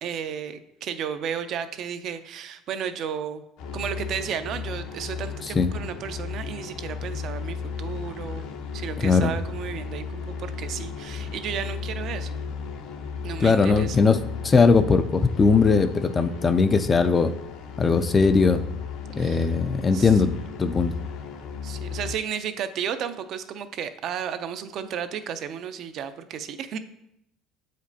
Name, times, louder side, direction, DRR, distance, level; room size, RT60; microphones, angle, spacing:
voice 1, 0.0-3.4 3.7-8.4 8.7-12.3 13.2-14.1 16.2-16.4 19.2-19.5 19.9-20.1 21.6-26.8, right 8 dB, 50° right, 10 dB, 0.4 m, -33 dB
sound 1, 3.6-22.1, left 6 dB, 70° left, 0.8 m, -35 dB
voice 2, 9.0-9.3 13.4-17.3 17.8-18.6 19.1-20.9, left 4 dB, 20° left, 11 dB, 0.3 m, -20 dB
8.0 x 5.1 x 2.7 m, 0.79 s
cardioid pair, 130°, 0 cm